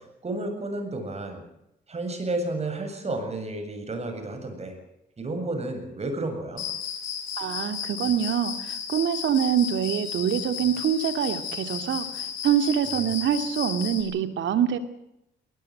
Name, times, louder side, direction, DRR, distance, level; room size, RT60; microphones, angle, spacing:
voice 1, 0.2-1.4 1.9-4.8 5.2-6.6 12.9-13.1, right 2 dB, 35° right, 6 dB, 7.8 m, -31 dB
Cricket, 6.6-14.0, left 8 dB, 85° left, 5.3 m, -34 dB
voice 2, 7.4-14.8, right 9 dB, 70° right, 9 dB, 2.6 m, -25 dB
20.5 x 19.5 x 7.9 m, 0.82 s
cardioid pair, 90°, 20 cm